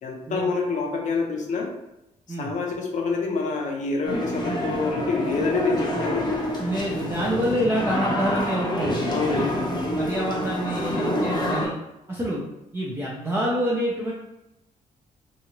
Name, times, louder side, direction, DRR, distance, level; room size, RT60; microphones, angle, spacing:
voice 1, 0.0-1.7 2.4-6.3 9.1-9.5, left 4 dB, 65° left, 1 dB, 0.7 m, -27 dB
sound 1, 4.0-11.7, left 1 dB, 30° left, 0.8 m, -27 dB
voice 2, 5.9-6.3 6.6-11.7 12.1-12.4 12.7-14.1, equal, 15° right, -5 dB, 0.5 m, -27 dB
2.9 x 2.4 x 2.9 m, 0.89 s
cardioid pair, 100°, 13 cm